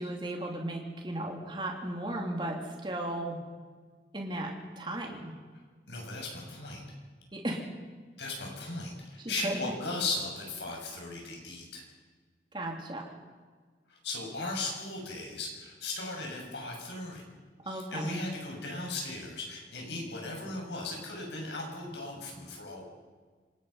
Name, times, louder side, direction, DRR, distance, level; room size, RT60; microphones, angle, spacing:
voice 1, 0.0-3.4 4.1-5.3 7.3-7.7 9.2-9.7 12.5-13.0 17.6-18.2, right 1 dB, 25° right, 1 dB, 3.1 m, -35 dB
voice 2, 5.9-6.8 8.2-11.8 13.9-17.2 17.6-22.8, left 2 dB, 90° left, 0 dB, 6.6 m, -37 dB
26.5 x 18.0 x 5.7 m, 1.5 s
head